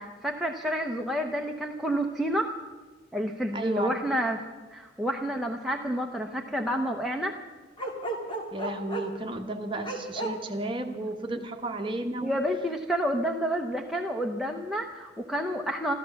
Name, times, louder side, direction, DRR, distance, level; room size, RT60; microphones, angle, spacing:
voice 1, 0.0-2.6 3.1-4.4 4.7-7.4 12.2-15.9, equal, ahead, 1 dB, 0.7 m, -29 dB
voice 2, 3.5-4.2 8.5-12.3, right 2 dB, 25° right, 4 dB, 1.2 m, -33 dB
Bark, 7.8-9.2 9.8-10.3, right 2 dB, 25° left, 2.1 m, -33 dB
13.0 x 13.0 x 7.0 m, 1.3 s
head